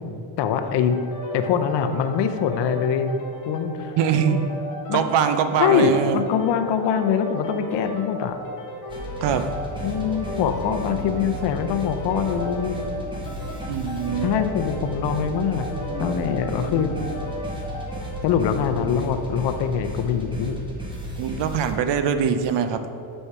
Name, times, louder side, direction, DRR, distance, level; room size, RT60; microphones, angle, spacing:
voice 1, 0.4-1.0 1.3-3.2 3.5-3.9 4.3-4.4 4.9-5.0 5.6-8.4 9.8-12.8 14.2-15.7 16.0-16.9 18.2-20.6, left 7 dB, 60° left, 7 dB, 0.6 m, -23 dB
sound 1, 0.9-18.3, equal, 40° left, 1.0 m, -35 dB
voice 2, 4.0-4.5 4.9-6.2 9.2-9.4 13.7-14.3 21.2-22.8, right 8 dB, 60° right, 9 dB, 0.6 m, -22 dB
sound 2, 8.9-21.7, equal, 10° right, 1.5 m, -34 dB
sound 3, 9.2-18.3 18.7-18.8, left 1 dB, 10° left, 0.9 m, -42 dB
5.6 x 5.4 x 4.7 m, 2.6 s
cardioid pair, 110°, 48 cm